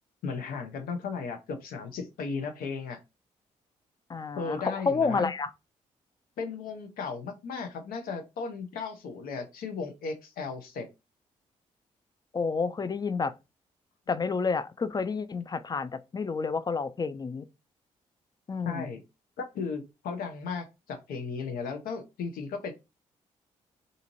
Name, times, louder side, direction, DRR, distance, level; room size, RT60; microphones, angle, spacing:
voice 1, 0.2-3.0 4.4-5.3 6.4-10.9 18.6-19.0 19.4-22.7, left 5 dB, 70° left, 0.6 m, -35 dB
voice 2, 4.1-5.5 12.3-13.3 14.1-17.5 18.5-18.9, left 4 dB, 25° left, 0.4 m, -30 dB
2.6 x 2.5 x 2.9 m
hypercardioid pair, 45°, 15 cm